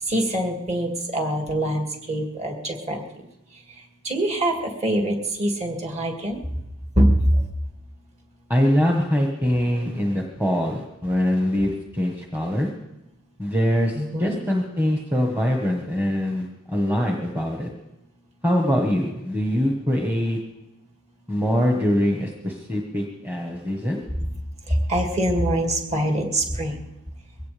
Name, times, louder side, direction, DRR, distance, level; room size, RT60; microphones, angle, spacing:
voice 1, 0.1-3.0 4.0-6.4 7.0-7.1 14.1-14.4 24.7-26.9, right 1 dB, 30° right, 1 dB, 2.4 m, -24 dB
voice 2, 8.5-12.7 13.4-17.7 18.4-20.4 21.3-24.0, equal, 10° right, 0 dB, 1.3 m, -23 dB
22.5 x 17.0 x 3.4 m, 0.93 s
head